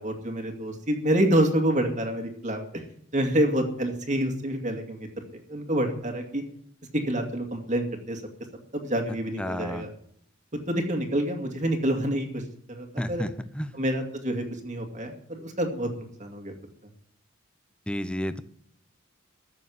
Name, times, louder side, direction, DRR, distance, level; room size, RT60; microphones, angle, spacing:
voice 1, 0.0-2.8 3.1-5.1 5.5-6.4 7.1-8.2 8.7-9.9 10.7-12.4 12.7-13.2 13.7-16.5, right 1 dB, 35° right, 4 dB, 2.3 m, -27 dB
voice 2, 9.4-9.9 13.0-13.7 17.9-18.4, equal, 5° left, 11 dB, 0.8 m, -31 dB
14.5 x 7.0 x 9.3 m, 0.71 s
head